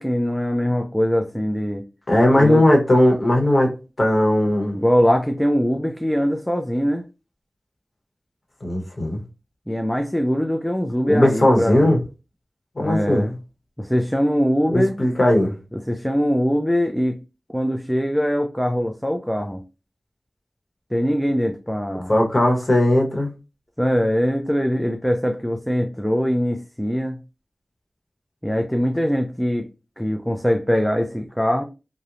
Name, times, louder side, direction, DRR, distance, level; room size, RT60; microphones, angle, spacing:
voice 1, 0.0-1.8 2.4-2.6 4.7-7.0 9.7-12.0 12.8-13.4 13.8-15.0 15.7-17.2 17.5-19.6 20.9-22.1 23.8-27.2 28.4-29.7 30.0-31.6, equal, ahead, 0.3 m, -22 dB
voice 2, 2.1-4.8 8.6-9.2 11.0-12.0 12.8-13.2 14.7-15.5 22.1-23.3, left 1 dB, 45° left, 0.9 m, -18 dB
2.8 x 2.0 x 2.4 m
wide cardioid pair, 60°, 0 cm